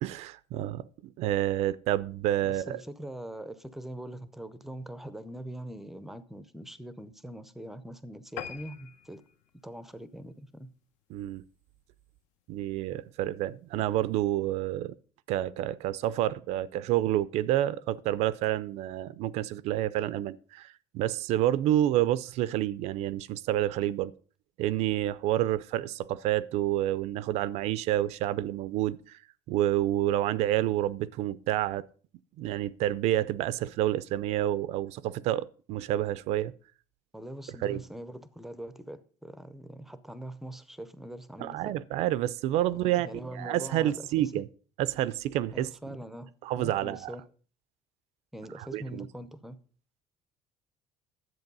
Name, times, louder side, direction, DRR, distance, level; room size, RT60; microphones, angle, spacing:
voice 1, 0.0-2.8 11.1-11.4 12.5-14.9 15.3-24.1 24.6-29.2 29.5-31.8 32.4-36.5 37.6-37.8 41.4-44.4 44.8-45.7 46.4-47.1 48.7-49.1, right 13 dB, 60° right, 0.4 m, -29 dB
voice 2, 2.4-9.2 9.6-10.7 37.1-41.7 42.7-44.3 45.5-46.3 46.6-47.2 48.3-49.6, right 1 dB, ahead, 0.5 m, -42 dB
sound 1, 8.4-11.1 11.6-11.8 12.2-12.3 12.6-12.7 13.0-13.1, left 9 dB, 75° left, 1.0 m, -45 dB
10.5 x 7.9 x 5.4 m
cardioid pair, 175°, 13 cm